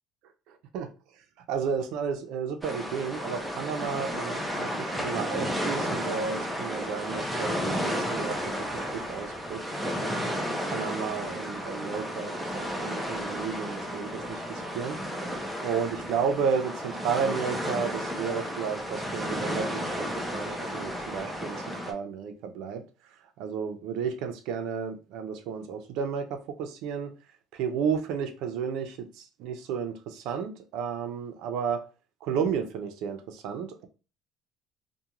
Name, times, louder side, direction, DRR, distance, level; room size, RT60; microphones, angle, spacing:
voice 1, 1.5-8.4 8.7-10.2 10.6-15.0 15.6-22.8 23.4-27.1 27.5-31.8 32.2-33.9, right 6 dB, 75° right, 0.5 m, -32 dB
sound 1, 2.6-21.9, equal, 5° right, 0.5 m, -33 dB
2.4 x 2.2 x 2.9 m
cardioid pair, 130°, 0 cm